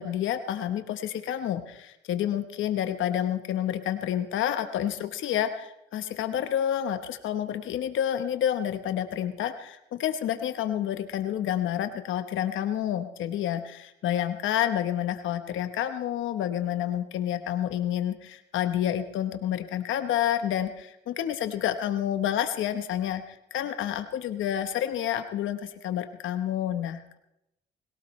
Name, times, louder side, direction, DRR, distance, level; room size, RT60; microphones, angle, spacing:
voice 1, 0.0-27.2, left 10 dB, 80° left, 9 dB, 1.0 m, -29 dB
21.5 x 17.0 x 3.2 m, 0.83 s
cardioid pair, 90°, 20 cm